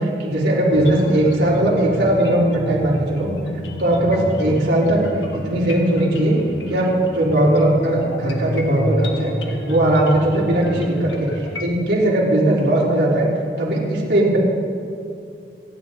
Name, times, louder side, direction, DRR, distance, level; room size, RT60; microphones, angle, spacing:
voice 1, 0.0-3.3 3.8-5.0 5.4-6.4 6.7-9.3 9.6-13.3 13.6-14.4, right 1 dB, 75° right, -5 dB, 3.8 m, -18 dB
sound 1, 0.7-11.6, equal, 90° left, 1.5 m, -30 dB
27.0 x 10.0 x 4.0 m, 2.5 s
head